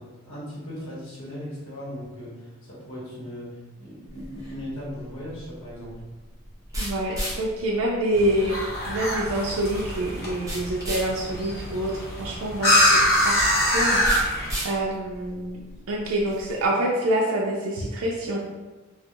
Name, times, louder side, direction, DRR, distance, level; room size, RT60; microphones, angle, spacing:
voice 1, 0.0-6.0, equal, 80° left, -7 dB, 0.9 m, -38 dB
sound 1, 4.1-16.7, right 1 dB, 15° right, 0.6 m, -37 dB
voice 2, 6.8-13.0 13.2-14.3 14.6-15.6 15.9-18.4, right 1 dB, 85° right, -3 dB, 0.4 m, -26 dB
sound 2, 8.1-14.5, equal, 50° left, 0.7 m, -24 dB
2.2 x 2.0 x 2.7 m, 1.2 s
head